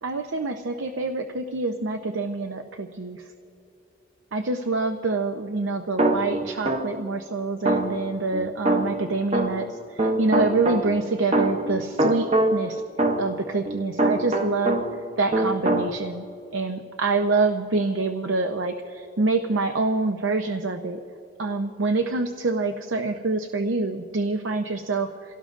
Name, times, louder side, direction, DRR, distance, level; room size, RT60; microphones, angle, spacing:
voice 1, 0.0-3.3 4.3-12.8 13.2-14.8 15.2-16.2 16.5-21.0 21.4-25.3, right 3 dB, 90° right, 6 dB, 0.7 m, -26 dB
sound 1, 6.0-7.1 7.7-9.7 10.0-15.1 15.3-15.9, right 1 dB, 35° right, 0.7 m, -24 dB
28.0 x 17.5 x 2.5 m, 2.8 s
head